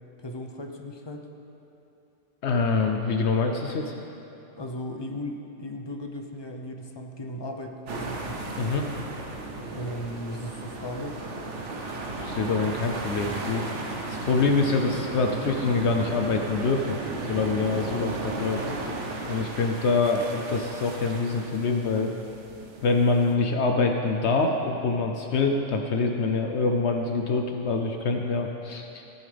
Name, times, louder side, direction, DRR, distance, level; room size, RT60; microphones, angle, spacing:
voice 1, 0.2-1.3 4.6-8.4 9.7-11.2, left 1 dB, 30° left, 4 dB, 0.5 m, -36 dB
voice 2, 2.4-3.9 8.6-8.9 12.2-13.7 14.1-17.0 17.2-18.6 19.3-22.1 22.8-28.9, left 3 dB, 65° left, 3 dB, 0.9 m, -25 dB
sound 1, 7.9-23.3, right 2 dB, 70° right, 1.3 m, -35 dB
14.5 x 11.0 x 3.4 m, 2.9 s
omnidirectional pair, 1.3 m